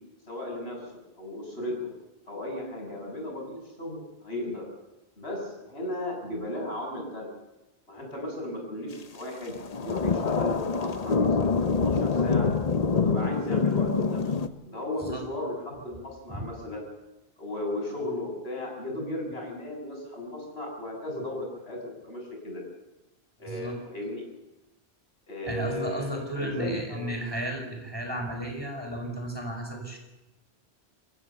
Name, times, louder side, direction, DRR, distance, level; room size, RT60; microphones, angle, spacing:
voice 1, 0.3-0.9 1.2-1.9 2.3-4.7 5.2-7.3 7.9-12.5 13.0-14.3 14.7-16.8 17.4-22.6 23.4-24.2 25.3-27.1, left 1 dB, 80° left, 0 dB, 7.1 m, -35 dB
sound 1, 9.6-14.5, left 4 dB, 40° left, 1.0 m, -25 dB
voice 2, 23.5-23.8 25.4-30.0, right 1 dB, 25° right, 2 dB, 5.3 m, -33 dB
27.0 x 15.5 x 6.9 m, 1.0 s
omnidirectional pair, 1.0 m